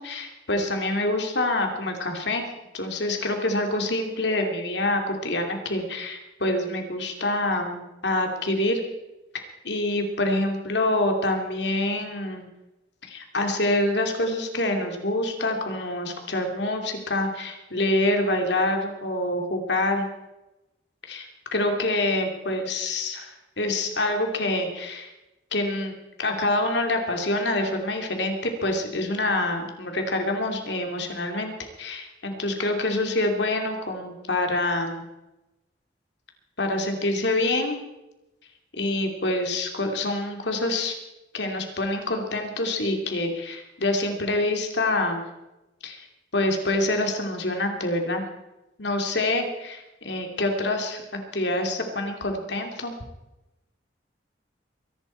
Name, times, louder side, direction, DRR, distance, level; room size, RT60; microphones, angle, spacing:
voice 1, 0.0-2.5 2.7-8.8 9.6-12.5 13.0-20.0 21.1-25.1 25.5-35.1 36.6-37.8 38.7-41.0 41.3-45.2 45.8-46.1 46.3-48.2 48.8-51.0 51.3-52.9, left 2 dB, 70° left, 3 dB, 2.6 m, -26 dB
23.0 x 11.5 x 4.5 m, 0.99 s
head